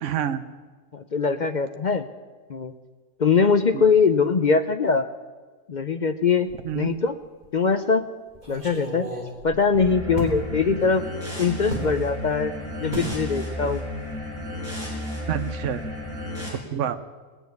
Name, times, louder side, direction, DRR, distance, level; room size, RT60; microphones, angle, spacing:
voice 1, 0.0-0.4 3.7-3.8 6.6-6.9 15.3-15.9 16.7-17.0, right 10 dB, 70° right, 10 dB, 1.1 m, -27 dB
voice 2, 0.9-2.1 2.5-2.7 3.2-5.1 5.7-6.5 6.7-7.2 7.5-8.0 8.5-9.1 9.4-11.0 11.4-13.8 15.4-15.5, left 5 dB, 50° left, 9 dB, 0.5 m, -22 dB
sound 1, 6.5-7.1 7.4-7.5 8.3-10.4 11.7-11.9 12.9-13.2 13.5-13.8 14.1-14.3, equal, 35° right, 3.5 m, -33 dB
sound 2, 9.7-16.5, left 1 dB, 10° right, 5.4 m, -33 dB
19.0 x 7.1 x 9.5 m, 1.4 s
omnidirectional pair, 1.4 m